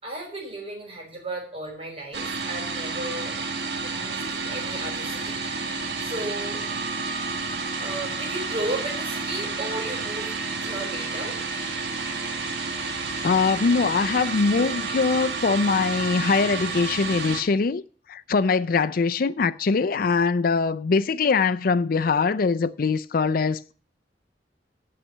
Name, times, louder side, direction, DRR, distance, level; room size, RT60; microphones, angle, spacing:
voice 1, 0.0-3.4 3.8-5.4 6.0-6.6 7.8-10.3 10.6-11.4, right 1 dB, 35° right, 5.3 m, -34 dB
sound 1, 2.1-17.4, right 4 dB, 75° right, 1.7 m, -30 dB
voice 2, 13.2-17.8 18.1-23.7, left 4 dB, 55° left, 0.4 m, -22 dB
8.6 x 6.6 x 8.4 m
head